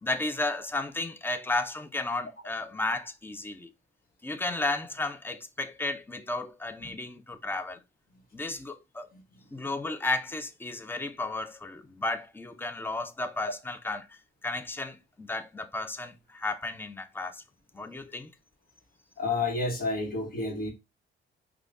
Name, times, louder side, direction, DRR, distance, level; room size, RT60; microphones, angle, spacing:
voice 1, 0.0-3.7 4.2-7.8 8.3-9.1 9.5-17.4 17.7-18.3, left 2 dB, 10° left, 0.5 m, -33 dB
voice 2, 19.2-20.7, left 3 dB, 45° left, 1.3 m, -30 dB
4.9 x 2.3 x 2.4 m
cardioid pair, 90°, 20 cm